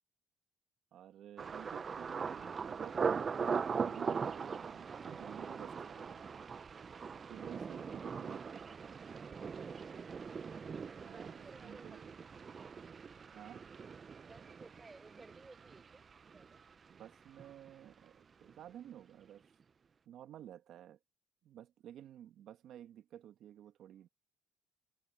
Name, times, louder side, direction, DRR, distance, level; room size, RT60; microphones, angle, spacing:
voice 1, 0.9-3.6 3.8-6.2 7.3-8.6 11.0-12.0 13.3-13.7 16.9-19.5 20.0-21.0 21.4-24.1, right 11 dB, 65° right, 1.6 m, -52 dB
Thunder, 1.4-17.1 17.4-18.0 18.4-18.7, right 6 dB, 35° right, 0.8 m, -41 dB
voice 2, 9.6-10.3 10.9-12.2 14.3-16.6, right 3 dB, 20° right, 6.0 m, -59 dB
supercardioid pair, 85°, 0 cm